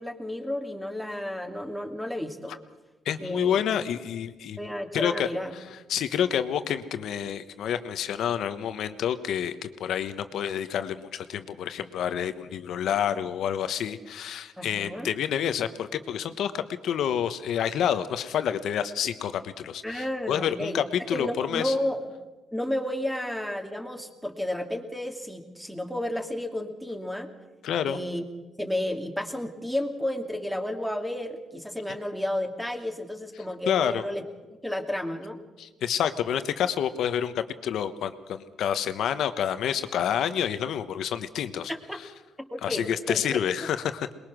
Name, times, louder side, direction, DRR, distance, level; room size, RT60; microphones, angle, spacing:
voice 1, 0.0-2.6 3.2-3.6 4.6-5.5 14.6-15.1 19.8-20.8 21.1-22.1 22.5-27.3 27.9-28.2 28.6-34.2 34.5-35.4 41.7-42.0 42.4-43.4, left 1 dB, ahead, 4 dB, 2.4 m, -32 dB
voice 2, 3.0-4.6 4.9-5.6 5.9-21.7 27.6-28.0 33.7-34.0 35.6-41.7 42.6-44.1, left 9 dB, 75° left, 11 dB, 1.1 m, -28 dB
23.0 x 21.0 x 6.2 m, 1.2 s
cardioid pair, 90°, 0 cm